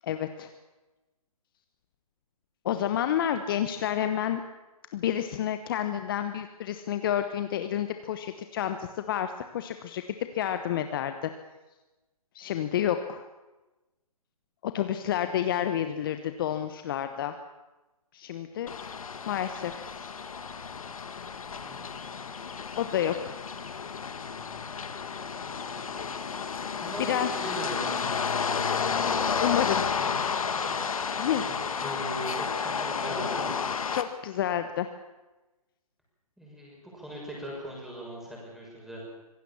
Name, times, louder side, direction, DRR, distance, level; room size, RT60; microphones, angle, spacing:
voice 1, 0.0-0.5 2.6-4.4 4.9-10.0 10.3-11.3 12.3-13.3 14.6-17.3 18.1-18.7 19.3-19.8 22.8-23.4 27.1-27.3 29.4-29.8 31.2-31.4 33.9-34.9, left 10 dB, 35° left, 8 dB, 1.1 m, -29 dB
sound 1, 18.7-34.0, left 6 dB, 65° left, 1.8 m, -31 dB
voice 2, 26.8-28.2 30.0-30.3 30.6-30.9 31.4-33.5 36.4-39.0, right 1 dB, ahead, -3 dB, 6.8 m, -39 dB
25.5 x 17.0 x 7.2 m, 1.1 s
figure-of-eight pair, 140°, 19 cm